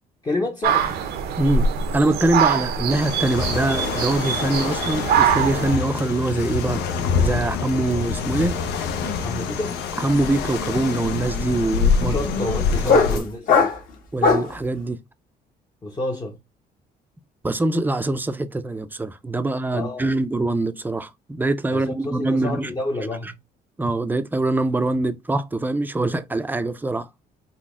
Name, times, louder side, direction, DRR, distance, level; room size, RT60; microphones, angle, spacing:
voice 1, 0.2-1.0 9.2-9.8 12.0-13.8 15.8-16.4 19.7-20.1 21.7-23.4, left 2 dB, 25° left, 0.7 m, -29 dB
sound 1, 0.6-5.8, right 7 dB, 70° right, 0.6 m, -23 dB
voice 2, 1.4-6.8 7.2-8.6 10.0-12.2 12.8-13.3 14.1-15.0 17.4-22.7 23.8-27.1, right 2 dB, 10° right, 0.4 m, -23 dB
sound 2, 2.9-13.2, left 5 dB, 85° left, 0.7 m, -26 dB
sound 3, 7.9-8.1 8.4-14.6, left 4 dB, 55° left, 1.3 m, -23 dB
4.0 x 2.1 x 3.6 m
cardioid pair, 110°, 17 cm